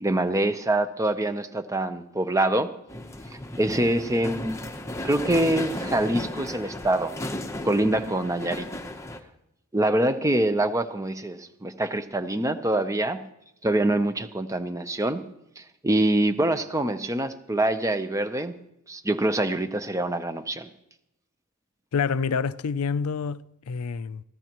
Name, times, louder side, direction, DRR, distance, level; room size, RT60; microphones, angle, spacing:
voice 1, 0.0-2.7 3.6-4.6 5.0-7.1 7.6-8.7 9.7-13.2 13.6-15.2 15.6-18.5 18.9-20.7, right 1 dB, 15° right, 0.7 m, -25 dB
sound 1, 2.9-9.2, left 1 dB, 15° left, 0.9 m, -35 dB
voice 2, 21.9-24.2, left 5 dB, 80° left, 0.5 m, -27 dB
23.0 x 15.5 x 3.0 m
head